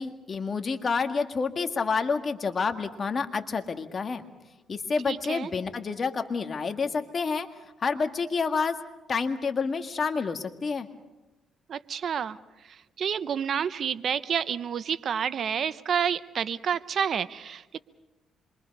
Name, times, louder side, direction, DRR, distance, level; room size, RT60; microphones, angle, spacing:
voice 1, 0.0-4.2 4.7-7.5 7.8-8.8 9.1-10.9, left 5 dB, 40° left, 6 dB, 1.8 m, -28 dB
voice 2, 5.1-5.5 11.7-12.4 13.0-17.8, right 7 dB, 55° right, 15 dB, 0.7 m, -29 dB
27.0 x 23.5 x 5.4 m, 1.1 s
cardioid pair, 90°, 0 cm